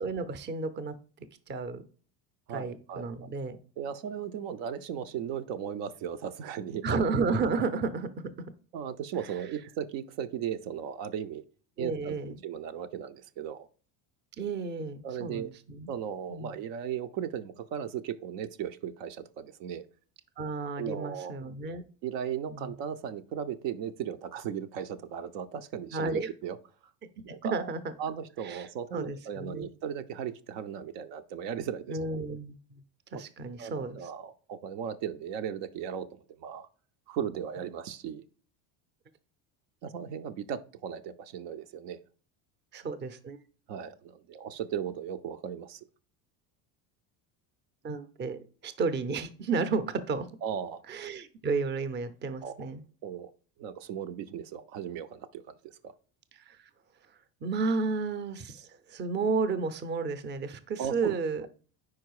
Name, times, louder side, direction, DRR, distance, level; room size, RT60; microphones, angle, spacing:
voice 1, 0.0-1.0 1.5-1.9 2.5-3.6 6.8-8.3 11.8-12.4 14.4-15.9 16.3-16.6 20.4-21.8 22.5-22.7 25.9-26.3 27.3-27.9 28.4-29.7 31.9-32.8 33.1-34.0 42.7-43.4 47.8-50.3 50.9-52.8 56.5-56.7 57.4-61.5, right 4 dB, 25° right, 0.5 m, -32 dB
voice 2, 2.5-3.0 3.8-6.8 8.7-11.4 11.8-13.7 15.0-15.5 15.9-19.8 20.8-21.4 22.0-26.6 27.2-27.7 28.0-32.2 33.6-36.7 37.1-38.2 39.8-42.0 43.7-45.8 50.4-50.8 52.4-52.7 53.0-53.3 53.6-55.9 60.8-61.2, right 8 dB, 70° right, 0.6 m, -37 dB
4.8 x 4.6 x 4.6 m
supercardioid pair, 95°, 48 cm